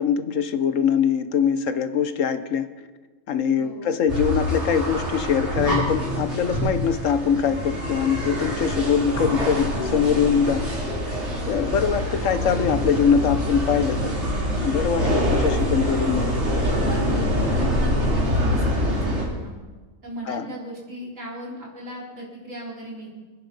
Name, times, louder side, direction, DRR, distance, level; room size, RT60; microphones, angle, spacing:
voice 1, 0.0-2.7 3.3-10.8 11.4-14.1 14.6-16.4 20.3-20.5, left 7 dB, 90° left, 11 dB, 1.3 m, -23 dB
voice 2, 3.6-4.0 15.0-16.0 16.6-19.5 20.0-23.1, right 1 dB, 90° right, -4 dB, 4.6 m, -37 dB
sound 1, 4.1-19.2, equal, 60° right, 4.6 m, -25 dB
25.5 x 10.0 x 5.4 m, 1.3 s
omnidirectional pair, 1.3 m